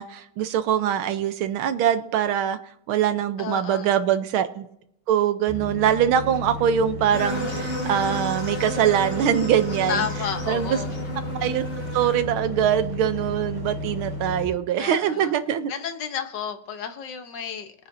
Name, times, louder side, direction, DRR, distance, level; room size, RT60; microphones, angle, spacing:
voice 1, 0.0-2.6 2.9-4.7 5.1-10.1 10.5-10.8 11.4-11.7 11.9-15.7, right 9 dB, 85° right, 11 dB, 1.6 m, -23 dB
voice 2, 3.4-3.9 9.9-10.9 14.8-15.3 15.7-17.7, left 7 dB, 65° left, 7 dB, 1.5 m, -31 dB
sound 1, 5.5-14.5, left 1 dB, 5° left, 4.8 m, -33 dB
sound 2, 7.1-12.2, equal, 35° left, 5.4 m, -33 dB
22.0 x 9.3 x 2.7 m, 0.77 s
omnidirectional pair, 2.3 m